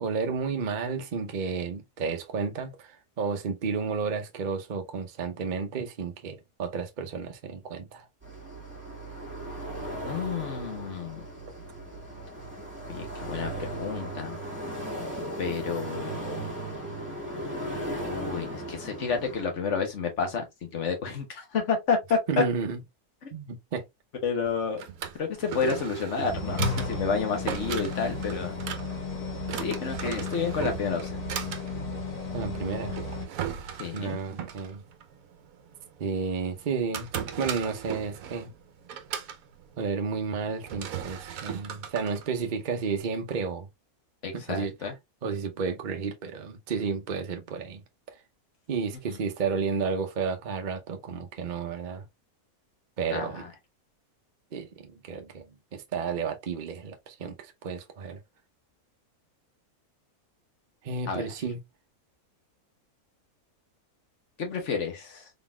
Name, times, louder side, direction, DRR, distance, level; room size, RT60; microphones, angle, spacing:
voice 1, 0.0-8.1 22.3-22.8 23.3-23.8 32.3-33.0 33.9-34.8 36.0-37.1 37.4-38.5 39.8-43.7 44.3-44.7 45.2-47.8 48.7-52.0 53.0-53.4 54.5-55.4 55.7-58.2 60.8-61.6, right 5 dB, 40° right, 0.7 m, -32 dB
sound 1, 8.2-19.4, right 1 dB, 10° right, 1.5 m, -37 dB
voice 2, 10.0-11.2 12.9-14.3 15.4-16.4 18.1-22.4 23.2-23.3 24.2-24.9 25.2-28.5 29.5-31.2 33.8-34.2 44.2-44.9 49.1-49.2 53.1-53.5 61.1-61.3 64.4-65.3, left 5 dB, 55° left, 1.5 m, -30 dB
Drawer open or close, 24.4-43.0, right 8 dB, 70° right, 1.1 m, -38 dB
sound 2, 26.2-33.3, left 3 dB, 75° left, 2.1 m, -33 dB
3.9 x 3.9 x 2.3 m
omnidirectional pair, 1.6 m